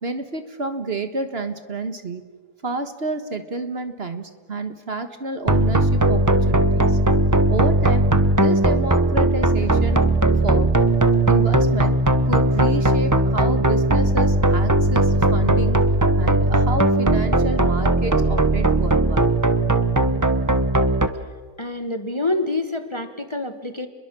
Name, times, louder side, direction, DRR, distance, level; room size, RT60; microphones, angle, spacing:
voice 1, 0.0-2.2 2.6-7.0 7.5-8.0 8.4-10.7 11.3-11.9 12.3-15.8 16.2-19.3, right 3 dB, 45° right, 8 dB, 1.7 m, -29 dB
sound 1, 5.5-21.1, right 2 dB, 15° right, 0.9 m, -18 dB
voice 2, 21.6-23.9, left 2 dB, 20° left, 8 dB, 1.2 m, -26 dB
29.5 x 22.0 x 7.6 m, 1.5 s
omnidirectional pair, 1.6 m